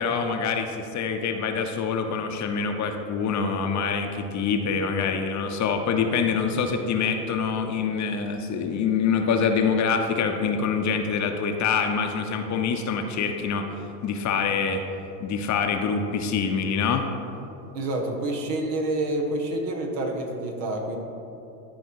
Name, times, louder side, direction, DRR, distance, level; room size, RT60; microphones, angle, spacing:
voice 1, 0.0-13.7 14.0-14.8 15.2-17.0, left 5 dB, 35° left, 5 dB, 0.8 m, -25 dB
voice 2, 17.7-21.0, right 1 dB, 70° right, 1 dB, 1.7 m, -28 dB
12.5 x 4.8 x 4.7 m, 2.9 s
hypercardioid pair, 95°, 50 cm